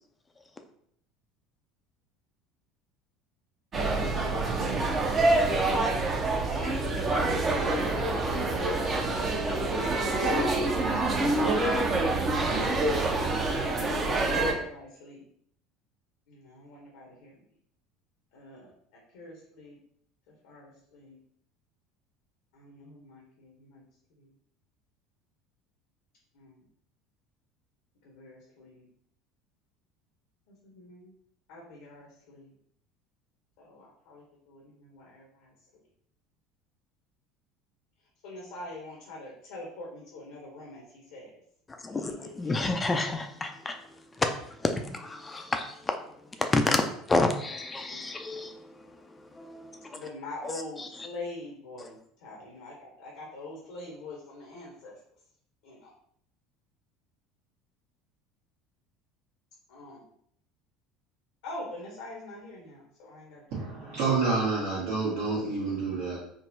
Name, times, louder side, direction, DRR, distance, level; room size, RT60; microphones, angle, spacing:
sound 1, 3.7-14.5, right 2 dB, 35° right, 0.6 m, -26 dB
voice 1, 13.5-15.2 16.3-17.4 18.3-18.7 19.1-19.8 20.4-21.2 22.5-23.8 24.2-24.3 26.3-26.6 28.0-28.8 30.6-31.1 31.5-32.5 33.6-35.5 38.2-41.4 41.9-42.7 47.9-48.0 48.3-48.4 49.9-54.9 55.6-55.9 59.7-60.0 61.4-63.6, left 2 dB, 70° left, 0.8 m, -44 dB
voice 2, 41.8-43.8 44.2-44.3 44.6-46.0 46.4-48.7 49.4-50.0 50.4-50.9, left 2 dB, 20° left, 0.4 m, -29 dB
voice 3, 63.5-66.2, right 4 dB, 60° right, 1.1 m, -28 dB
3.7 x 2.0 x 2.6 m
hypercardioid pair, 75°, 0 cm